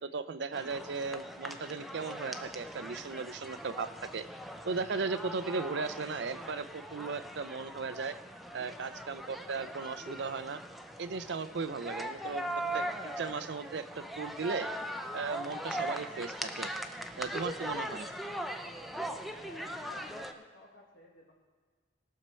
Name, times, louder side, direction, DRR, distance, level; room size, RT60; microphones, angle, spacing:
voice 1, 0.0-4.3 4.7-8.2 8.5-10.6 11.0-12.4 12.7-14.7 15.1-16.7 17.2-18.1, right 4 dB, 65° right, 13 dB, 0.5 m, -37 dB
sound 1, 0.5-20.3, right 1 dB, ahead, 0.5 m, -40 dB
voice 2, 19.2-21.3, left 2 dB, 70° left, -4 dB, 1.5 m, -54 dB
19.5 x 6.5 x 4.4 m, 1.5 s
head